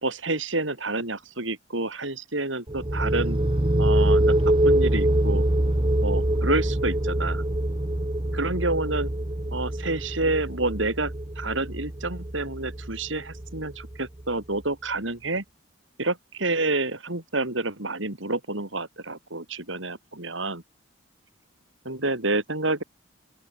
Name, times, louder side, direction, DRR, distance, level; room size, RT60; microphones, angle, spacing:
voice 1, 0.0-3.4 3.8-4.3 4.6-5.4 6.0-7.4 8.3-9.1 9.5-15.4 16.0-20.6 21.8-22.8, right 2 dB, 75° right, 4.7 m, -28 dB
sound 1, 2.7-14.2, right 1 dB, 25° right, 1.1 m, -24 dB
open air
head